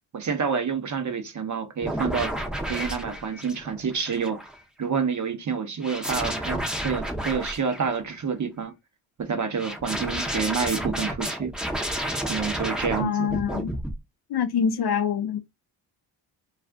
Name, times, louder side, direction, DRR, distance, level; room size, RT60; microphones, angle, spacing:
voice 1, 0.1-2.3 2.7-4.4 4.8-8.7 9.2-11.5 12.3-13.3, right 6 dB, 35° right, 0.8 m, -28 dB
sound 1, 1.8-4.6 5.8-8.1 9.6-13.0 13.3-13.9, right 1 dB, ahead, 0.7 m, -31 dB
voice 2, 13.0-13.7 14.3-15.4, left 7 dB, 55° left, 0.5 m, -25 dB
2.5 x 2.3 x 3.4 m
cardioid pair, 85°, 48 cm